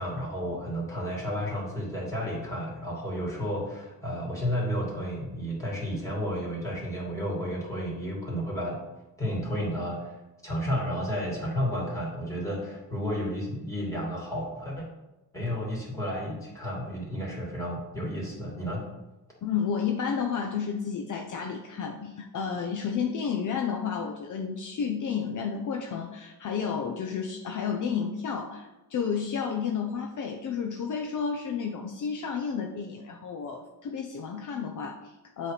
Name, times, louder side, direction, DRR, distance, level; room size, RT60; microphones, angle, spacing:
voice 1, 0.0-8.8 9.2-10.2 10.4-14.8 15.3-18.9, equal, 10° left, -5 dB, 2.7 m, -32 dB
voice 2, 19.4-35.5, left 6 dB, 55° left, 3 dB, 0.7 m, -31 dB
8.0 x 3.3 x 5.8 m, 1.0 s
cardioid pair, 120°, 37 cm